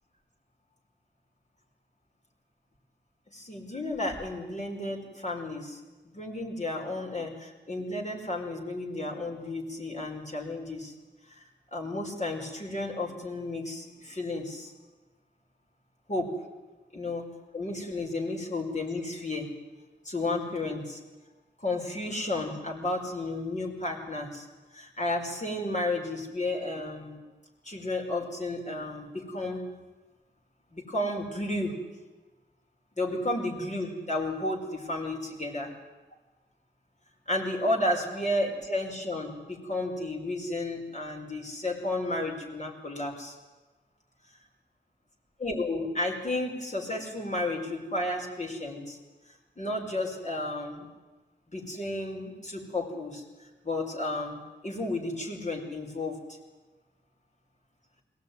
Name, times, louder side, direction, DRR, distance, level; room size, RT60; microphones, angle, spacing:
voice 1, 3.3-10.9 11.3-11.4 11.7-14.7 16.1-16.3 16.9-17.2 17.5-19.5 20.1-21.0 21.6-24.5 24.7-27.2 27.6-29.7 30.7-31.8 33.0-35.7 37.3-43.4 45.4-49.0 49.6-50.9 51.5-56.2, left 2 dB, 40° left, 1 dB, 5.1 m, -32 dB
21.5 x 18.0 x 9.5 m, 1.2 s
cardioid pair, 50°, 19 cm